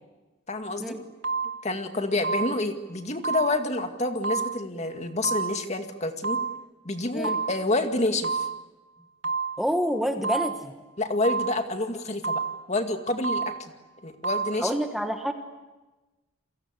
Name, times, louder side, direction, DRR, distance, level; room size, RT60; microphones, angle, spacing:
voice 1, 0.5-1.0 1.6-6.4 6.8-8.5 11.0-12.4 12.7-13.7 14.0-14.7, left 2 dB, 35° left, 6 dB, 2.1 m, -28 dB
sound 1, 0.6-0.8 1.2-1.8 2.2-2.8 3.2-3.8 4.2-4.8 5.2-5.8 6.2-6.8 7.2-7.8 8.2-8.8 9.2-9.8 10.2-10.8 11.2-11.8 12.2-12.8 13.2-13.8 14.2-14.5, right 5 dB, 65° right, 2.2 m, -31 dB
voice 2, 9.6-10.7 14.6-15.3, equal, ahead, 5 dB, 1.2 m, -27 dB
29.5 x 23.0 x 8.3 m, 1.2 s
head